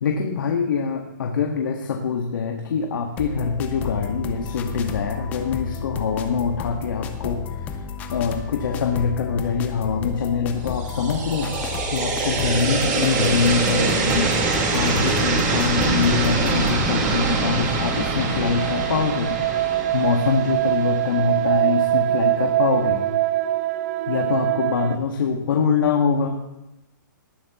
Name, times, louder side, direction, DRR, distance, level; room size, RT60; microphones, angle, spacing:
voice 1, 0.0-7.7 8.1-19.4 19.9-23.0 24.1-26.4, left 5 dB, 70° left, 2 dB, 1.7 m, -24 dB
sound 1, 3.2-16.9, left 7 dB, 15° left, 0.6 m, -32 dB
sound 2, 10.6-21.7, right 4 dB, 30° right, 4.2 m, -24 dB
sound 3, 16.6-25.0, right 14 dB, 45° right, 0.4 m, -24 dB
18.5 x 9.5 x 3.1 m, 0.94 s
hypercardioid pair, 170°, 11 cm